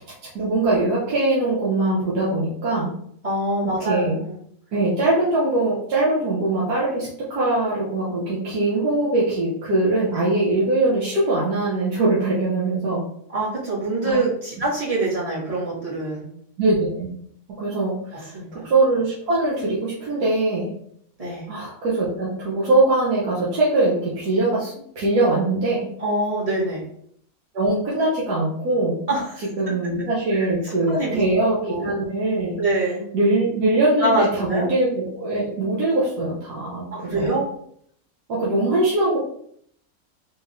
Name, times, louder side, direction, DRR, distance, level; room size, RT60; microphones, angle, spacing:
voice 1, 0.3-2.9 3.8-4.2 4.7-13.0 14.0-14.2 16.6-17.1 17.6-20.7 21.5-25.9 27.5-29.0 29.6-32.6 33.1-37.4 38.3-39.2, right 2 dB, 80° right, -7 dB, 1.4 m, -22 dB
voice 2, 3.2-4.4 13.3-16.3 18.3-18.6 21.2-21.5 26.0-26.8 29.1-29.4 30.6-31.2 31.7-31.9 32.6-33.0 34.0-34.7 36.9-37.5, right 2 dB, 25° right, -8 dB, 1.7 m, -25 dB
3.8 x 3.4 x 2.7 m, 0.66 s
omnidirectional pair, 1.6 m